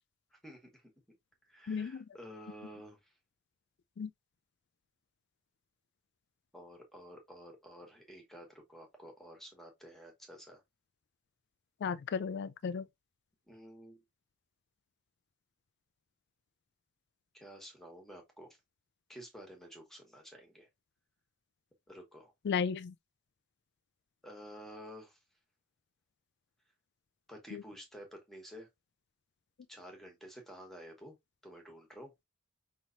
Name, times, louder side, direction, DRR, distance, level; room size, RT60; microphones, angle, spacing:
voice 1, 0.3-1.2 1.5-3.1 6.5-10.6 13.5-14.0 17.3-18.6 19.1-20.7 21.9-22.3 24.2-25.2 27.3-28.7 29.7-31.2 31.4-32.1, equal, ahead, 1.2 m, -51 dB
voice 2, 1.7-2.0 4.0-4.1 11.8-12.8 22.5-22.9 27.5-27.6, left 6 dB, 50° left, 0.3 m, -34 dB
5.5 x 3.0 x 2.6 m
head